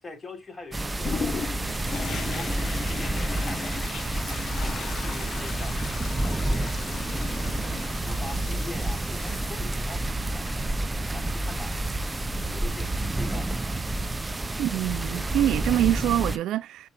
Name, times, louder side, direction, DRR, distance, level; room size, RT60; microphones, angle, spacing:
voice 1, 0.0-3.7 4.2-5.9 6.2-10.5 10.8-11.8 12.3-13.8, left 2 dB, 25° left, 3.6 m, -44 dB
sound 1, 0.7-16.4, right 2 dB, 20° right, 0.6 m, -29 dB
Toilet flush, 1.0-13.4 14.0-14.1, left 6 dB, 60° left, 1.1 m, -39 dB
voice 2, 14.6-16.9, right 13 dB, 85° right, 0.4 m, -25 dB
6.1 x 3.1 x 5.2 m
cardioid pair, 90°, 0 cm